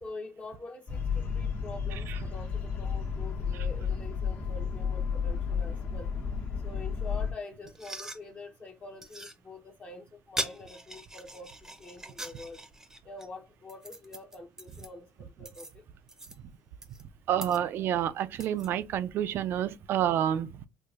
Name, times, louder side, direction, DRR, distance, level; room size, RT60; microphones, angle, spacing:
voice 1, 0.0-6.1 6.6-12.6 13.0-15.8, left 3 dB, 35° left, 0.8 m, -45 dB
sound 1, 0.9-7.3, left 6 dB, 55° left, 1.1 m, -32 dB
sound 2, 7.6-19.1, right 1 dB, 10° right, 0.6 m, -43 dB
voice 2, 17.3-20.7, right 10 dB, 65° right, 0.4 m, -29 dB
4.5 x 2.4 x 2.4 m
cardioid pair, 95°, 4 cm